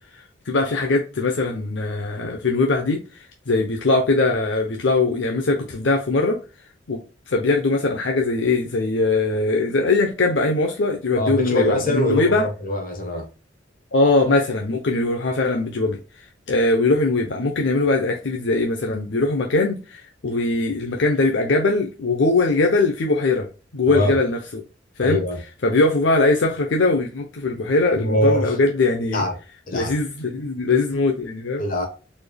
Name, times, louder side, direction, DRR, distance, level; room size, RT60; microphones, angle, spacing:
voice 1, 0.5-6.4 6.9-12.5 13.9-16.0 16.5-23.5 23.7-24.6 25.0-25.2 25.6-29.2 29.7-31.6, left 3 dB, 75° left, 0.7 m, -21 dB
voice 2, 11.2-13.3 23.9-24.1 25.0-25.4 28.0-28.6 29.1-29.3 29.7-29.9 31.6-31.9, left 1 dB, 50° left, 1.2 m, -23 dB
4.1 x 3.4 x 2.3 m
head